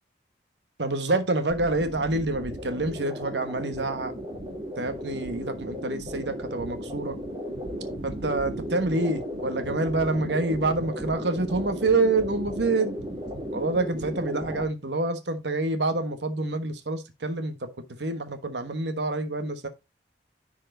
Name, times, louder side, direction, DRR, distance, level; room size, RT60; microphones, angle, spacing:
voice 1, 0.8-4.1 4.8-7.1 8.0-13.0 13.5-17.7 18.0-19.7, right 2 dB, 80° right, 1.3 m, -27 dB
sound 1, 1.5-14.6, equal, 25° right, 3.4 m, -35 dB
10.5 x 4.7 x 3.9 m
head